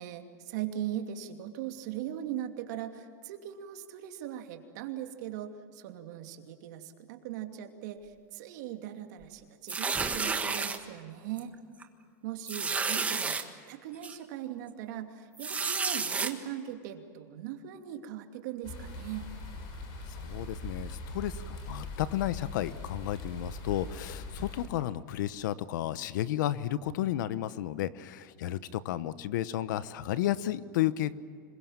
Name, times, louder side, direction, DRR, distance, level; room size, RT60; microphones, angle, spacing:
voice 1, 0.0-11.5 12.2-19.3, right 11 dB, 65° right, 5 dB, 2.7 m, -40 dB
sound 1, 9.7-10.8 11.4-11.5 11.8-11.9 12.5-13.4 14.0-14.1 15.4-16.3, right 5 dB, 15° right, 1.5 m, -31 dB
sound 2, 18.6-24.6, left 2 dB, 45° left, 6.4 m, -41 dB
voice 2, 20.2-31.1, left 13 dB, 70° left, 15 dB, 1.1 m, -32 dB
26.5 x 22.5 x 7.4 m, 2.2 s
supercardioid pair, 140°, 10 cm